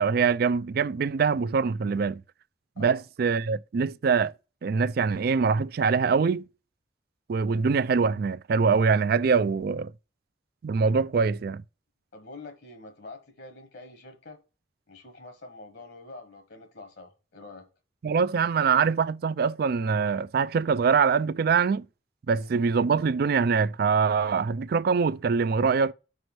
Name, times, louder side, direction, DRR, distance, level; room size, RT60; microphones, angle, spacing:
voice 1, 0.0-2.2 2.8-4.3 4.6-6.5 7.3-9.9 10.6-11.6 18.0-21.9 22.3-25.9, right 5 dB, 60° right, 0.4 m, -24 dB
voice 2, 12.1-14.4 14.9-17.6 22.3-22.5, left 3 dB, 65° left, 1.3 m, -46 dB
5.2 x 4.8 x 5.9 m
head